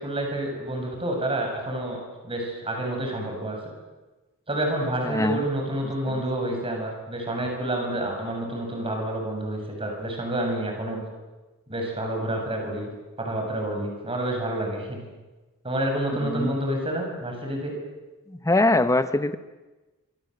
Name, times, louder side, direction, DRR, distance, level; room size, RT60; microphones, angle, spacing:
voice 1, 0.0-2.0 2.2-3.6 4.5-11.0 11.7-12.9 13.2-15.0 15.6-17.7, right 1 dB, 25° right, 2 dB, 7.5 m, -28 dB
voice 2, 5.1-5.4 6.1-6.2 16.2-16.5 18.3-19.4, left 2 dB, 15° left, 12 dB, 0.9 m, -23 dB
26.0 x 25.5 x 8.0 m, 1.1 s
head